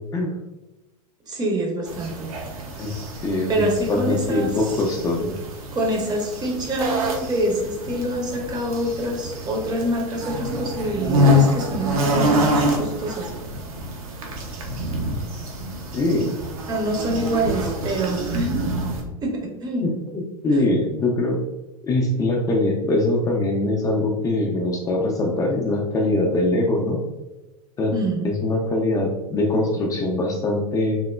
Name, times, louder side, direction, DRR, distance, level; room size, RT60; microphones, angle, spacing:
voice 1, 1.3-2.3 3.5-4.5 5.7-13.3 16.7-18.8 19.2-19.9 20.5-20.7 27.9-28.3, right 1 dB, 20° right, 1 dB, 0.6 m, -26 dB
sound 1, 1.9-19.0, equal, 65° right, 0.6 m, -26 dB
voice 2, 3.2-5.3 15.9-16.3 19.8-21.4 21.8-27.0 27.8-27.9 28.2-31.0, left 2 dB, 20° left, -1 dB, 0.3 m, -22 dB
3.0 x 2.0 x 2.2 m, 1.0 s
figure-of-eight pair, 95°, 20 cm